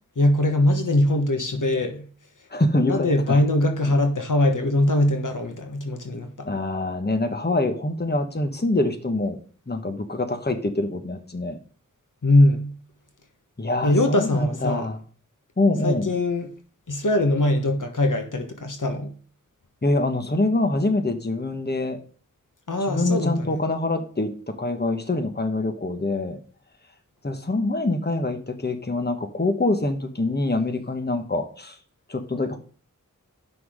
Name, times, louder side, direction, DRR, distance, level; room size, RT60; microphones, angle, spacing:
voice 1, 0.2-2.1 2.8-6.5 12.2-12.7 13.8-14.9 15.8-16.5 16.9-19.1 22.7-23.6, left 1 dB, 70° left, 1.4 m, -22 dB
voice 2, 2.5-3.4 6.4-9.4 9.7-11.6 13.6-15.0 15.6-16.1 19.8-22.0 22.9-26.4 27.2-31.8 32.1-32.6, left 2 dB, 30° left, 1.3 m, -25 dB
9.4 x 6.1 x 5.0 m
wide cardioid pair, 60°, 32 cm